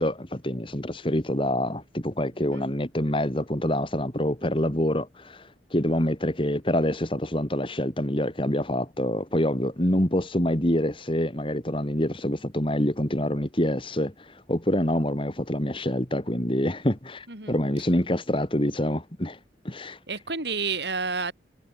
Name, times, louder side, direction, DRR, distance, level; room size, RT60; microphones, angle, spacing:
voice 1, 0.0-19.4 19.6-20.0, left 1 dB, 30° left, 2.8 m, -26 dB
voice 2, 17.3-17.6 20.1-21.3, right 4 dB, 70° right, 5.9 m, -30 dB
head